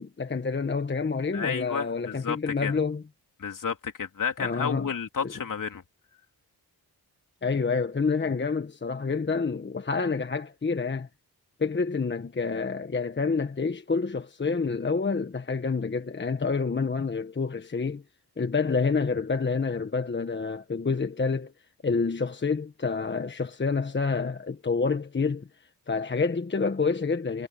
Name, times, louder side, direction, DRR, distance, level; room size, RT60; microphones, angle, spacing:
voice 1, 0.0-3.0 4.4-4.9 5.2-5.3 7.4-11.1 11.6-18.0 18.4-21.5 21.8-25.5 25.9-27.5, left 4 dB, 30° left, 1.3 m, -28 dB
voice 2, 1.3-2.8 3.4-5.8, left 6 dB, 55° left, 3.4 m, -31 dB
wide cardioid pair, 110°, 39 cm